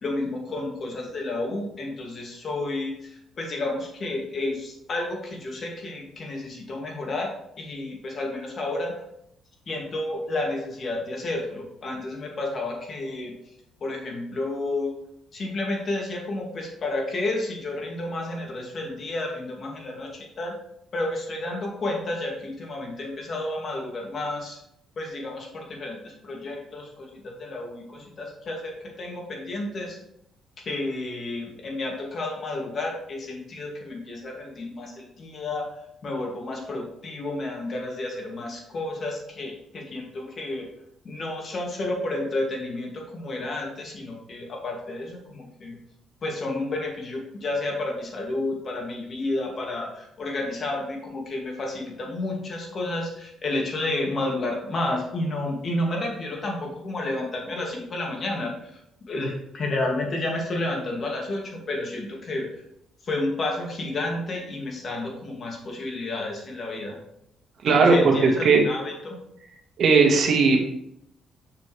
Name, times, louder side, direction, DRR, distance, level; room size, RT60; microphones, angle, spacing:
voice 1, 0.0-9.0 9.7-13.3 13.8-14.9 15.3-20.5 20.9-24.6 25.0-28.7 29.0-30.0 30.7-35.7 36.0-40.7 41.0-45.8 46.2-58.5 59.1-62.6 63.0-67.0 67.7-69.2, left 2 dB, 45° left, 0 dB, 2.3 m, -31 dB
voice 2, 67.6-68.6 69.8-70.6, right 4 dB, 65° right, 2 dB, 1.6 m, -17 dB
6.8 x 6.4 x 3.3 m, 0.75 s
cardioid pair, 90°, 0 cm